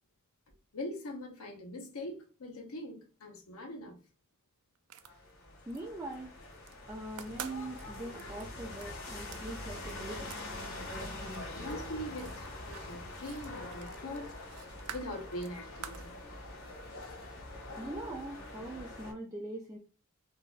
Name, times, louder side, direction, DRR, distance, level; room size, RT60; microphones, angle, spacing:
voice 1, 0.7-4.0 11.5-14.3 14.9-16.2, left 1 dB, 70° left, 0.7 m, -42 dB
sound 1, 4.8-5.8 6.1-6.8 7.1-10.5 10.7-16.1, right 9 dB, 85° right, 0.4 m, -49 dB
sound 2, 5.0-19.1, left 2 dB, 90° left, 1.6 m, -44 dB
voice 2, 5.7-6.3 6.9-10.4 17.8-19.8, right 2 dB, 15° right, 0.4 m, -42 dB
3.8 x 2.5 x 2.4 m
head